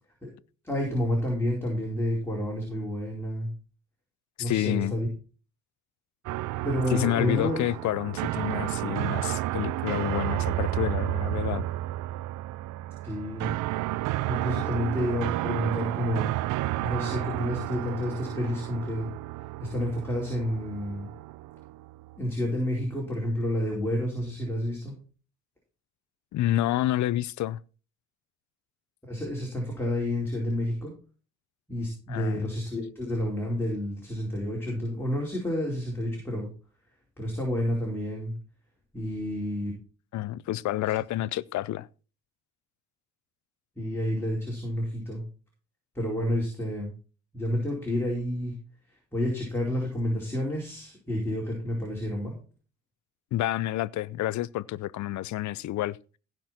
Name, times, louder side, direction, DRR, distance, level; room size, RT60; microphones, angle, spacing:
voice 1, 0.6-3.5 4.4-5.1 6.6-7.6 13.0-13.5 14.0-16.3 16.8-19.1 19.6-21.1 22.2-24.9 29.0-30.9 31.7-36.5 37.2-38.3 38.9-39.7 43.8-45.2 45.9-46.9 47.3-48.5 49.1-52.4, left 1 dB, 5° left, 4.5 m, -30 dB
voice 2, 4.4-5.0 6.9-11.6 26.3-27.6 32.1-32.5 40.1-41.9 53.3-56.0, left 14 dB, 70° left, 0.6 m, -29 dB
sound 1, 6.3-22.2, right 16 dB, 85° right, 0.5 m, -31 dB
16.0 x 6.1 x 4.4 m
cardioid pair, 90°, 30 cm